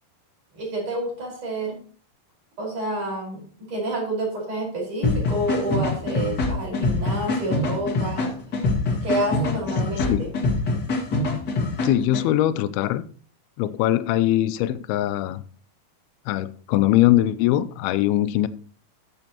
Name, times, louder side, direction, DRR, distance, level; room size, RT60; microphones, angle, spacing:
voice 1, 0.5-1.8 2.6-3.4 3.7-8.3 9.0-10.3, right 1 dB, 40° right, -1 dB, 5.9 m, -28 dB
sound 1, 5.0-12.2, left 2 dB, 40° left, 1.7 m, -25 dB
voice 2, 11.8-13.0 13.6-15.4 16.3-18.5, left 14 dB, 85° left, 12 dB, 2.5 m, -21 dB
14.0 x 8.5 x 3.0 m, 0.43 s
omnidirectional pair, 4.5 m